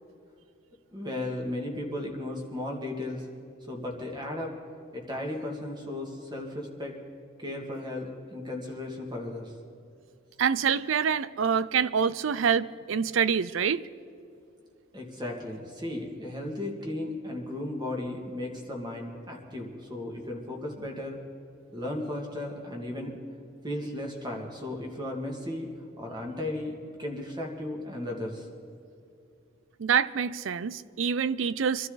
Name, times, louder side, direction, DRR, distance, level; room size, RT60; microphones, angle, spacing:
voice 1, 0.9-3.2 3.7-4.6 4.9-6.9 7.4-9.5 14.9-21.2 21.7-23.1 23.6-25.7 26.0-28.5, left 1 dB, 20° right, 2.3 m, -35 dB
voice 2, 10.4-13.8 29.8-31.9, right 7 dB, 80° right, 0.5 m, -26 dB
24.5 x 12.5 x 4.0 m
head